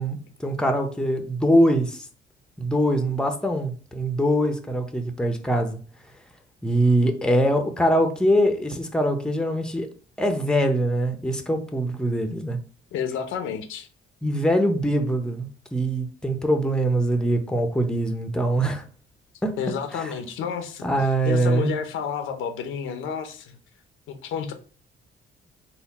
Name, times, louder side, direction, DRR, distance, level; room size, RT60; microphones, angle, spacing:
voice 1, 0.0-2.1 2.6-5.8 6.6-9.9 10.2-12.6 14.2-18.8 19.4-19.6 19.9-20.1 20.8-21.7, right 1 dB, 5° left, 0.7 m, -23 dB
voice 2, 12.9-13.9 19.6-20.9 21.2-23.6 24.1-24.5, left 7 dB, 85° left, 0.7 m, -30 dB
4.1 x 2.2 x 4.1 m
cardioid pair, 90°, 20 cm